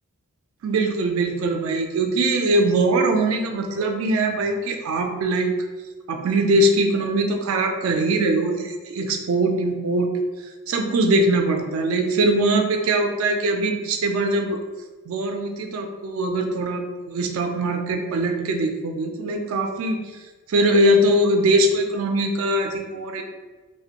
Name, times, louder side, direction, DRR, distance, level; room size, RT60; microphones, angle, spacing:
voice 1, 0.6-5.5 6.1-10.1 10.7-14.6 15.1-20.0 20.5-23.2, right 1 dB, 65° right, 4 dB, 0.3 m, -22 dB
2.4 x 2.1 x 2.8 m, 1.3 s
head